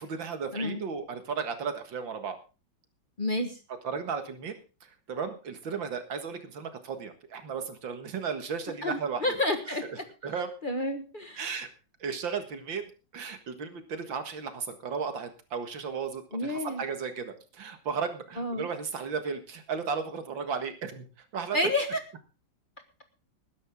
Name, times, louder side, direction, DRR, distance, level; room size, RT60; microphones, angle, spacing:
voice 1, 0.0-2.4 3.8-9.4 9.7-9.8 10.2-10.5 11.4-11.7 12.0-21.6, right 6 dB, 75° right, 8 dB, 2.5 m, -35 dB
voice 2, 3.2-3.6 8.8-10.0 10.6-11.4 16.3-16.8 18.4-18.7 21.5-22.0, left 1 dB, 30° left, 7 dB, 1.5 m, -30 dB
20.0 x 10.5 x 3.7 m, 0.33 s
omnidirectional pair, 2.1 m